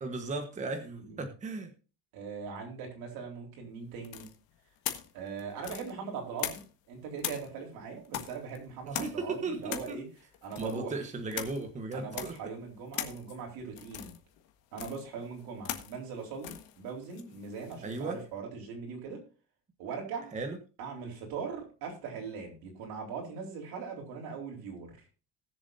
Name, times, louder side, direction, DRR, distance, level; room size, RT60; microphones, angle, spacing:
voice 1, 0.0-1.7 8.9-10.0 10.6-12.3 17.8-18.2 20.3-20.6, right 3 dB, 20° right, 5 dB, 1.2 m, -36 dB
voice 2, 0.8-1.3 2.1-4.3 5.1-6.6 6.9-10.1 10.4-11.0 11.9-14.1 14.7-19.2 19.8-20.4 20.8-25.0, right 5 dB, 85° right, 1 dB, 4.1 m, -40 dB
sound 1, 4.0-6.9 7.2-18.1, left 12 dB, 85° left, 1.6 m, -41 dB
19.5 x 7.1 x 2.7 m, 0.34 s
cardioid pair, 180°, 35 cm